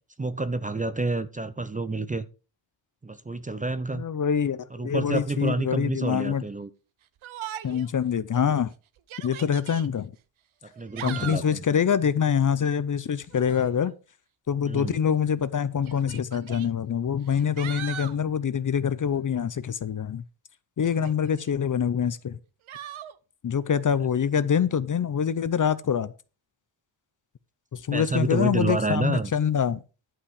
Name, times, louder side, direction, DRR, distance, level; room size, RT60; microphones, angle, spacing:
voice 1, 0.2-2.3 3.0-4.1 4.7-6.7 10.6-11.6 14.7-15.0 27.9-29.3, right 3 dB, 15° right, 0.5 m, -29 dB
voice 2, 3.9-6.4 7.6-8.7 9.2-10.1 11.0-13.9 14.5-20.2 20.8-22.4 23.4-26.1 27.7-29.8, left 7 dB, 40° left, 0.5 m, -25 dB
Yell, 7.2-7.9 8.3-8.4 9.0-9.9 10.7-11.6 13.3-13.7 14.9-15.0 15.9-16.7 17.2-18.2 20.8-21.5 22.7-23.1, right 11 dB, 85° right, 0.8 m, -39 dB
11.0 x 5.8 x 4.8 m
wide cardioid pair, 150°, 47 cm